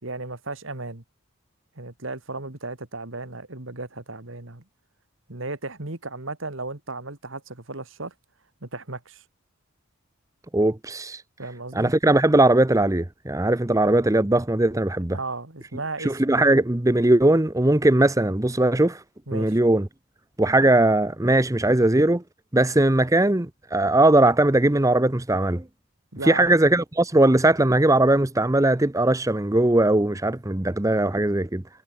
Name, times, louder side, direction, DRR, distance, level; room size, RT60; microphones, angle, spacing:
voice 1, 0.0-1.0 1.8-4.6 5.3-8.1 8.6-9.2 11.4-11.9 15.1-16.5 19.3-19.6 26.1-26.5, right 2 dB, 60° right, 2.4 m, -35 dB
voice 2, 10.5-11.2 11.7-15.2 16.0-19.0 19.3-19.9 20.4-22.2 22.5-25.6 26.2-31.6, right 1 dB, 15° right, 0.7 m, -19 dB
head